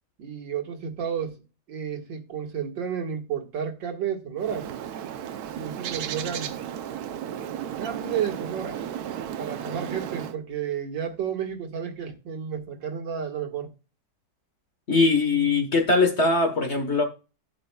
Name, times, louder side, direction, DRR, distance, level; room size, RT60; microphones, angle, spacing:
voice 1, 0.2-1.4 1.7-4.7 5.5-6.5 7.8-8.8 9.4-13.7, right 8 dB, 85° right, 2.2 m, -31 dB
Bird, 4.4-10.4, right 9 dB, 65° right, 1.1 m, -34 dB
voice 2, 14.9-17.0, left 3 dB, 40° left, 1.4 m, -21 dB
11.5 x 8.5 x 2.3 m
omnidirectional pair, 1.9 m